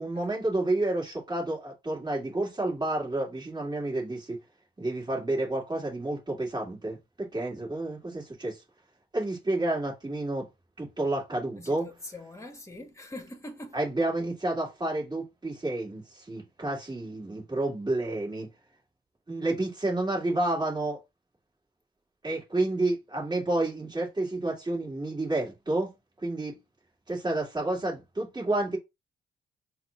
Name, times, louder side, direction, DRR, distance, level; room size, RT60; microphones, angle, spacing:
voice 1, 0.0-4.4 4.8-8.6 9.1-10.5 10.8-11.9 13.7-18.5 19.3-21.0 22.2-25.9 26.2-26.6 27.1-28.8, right 2 dB, 20° right, 1.9 m, -30 dB
voice 2, 11.6-13.8, left 1 dB, 15° left, 1.1 m, -43 dB
4.2 x 2.2 x 3.6 m
cardioid pair, 90°, 20 cm